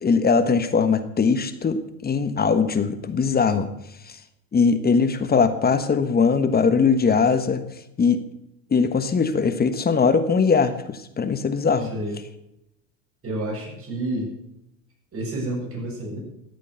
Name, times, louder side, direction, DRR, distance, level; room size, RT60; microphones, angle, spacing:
voice 1, 0.0-3.7 4.5-7.6 8.0-8.2 8.7-11.9, left 5 dB, 20° left, 10 dB, 1.3 m, -20 dB
voice 2, 11.8-12.1 13.2-14.3 15.1-16.2, right 1 dB, 30° right, -1 dB, 7.5 m, -29 dB
14.0 x 8.4 x 8.2 m, 0.83 s
hypercardioid pair, 95°, 42 cm